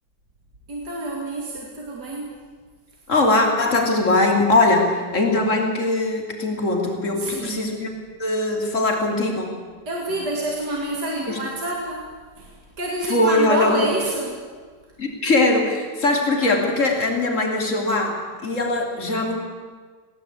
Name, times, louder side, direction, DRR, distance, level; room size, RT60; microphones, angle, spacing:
voice 1, 0.7-2.3 7.2-7.6 9.9-14.5, right 2 dB, 80° right, -2 dB, 3.3 m, -28 dB
voice 2, 3.1-7.9 8.2-9.5 10.1-10.2 11.3-11.4 13.1-13.9 15.0-19.4, left 2 dB, 45° left, 1 dB, 3.5 m, -21 dB
20.5 x 17.5 x 8.4 m, 1.5 s
omnidirectional pair, 1.8 m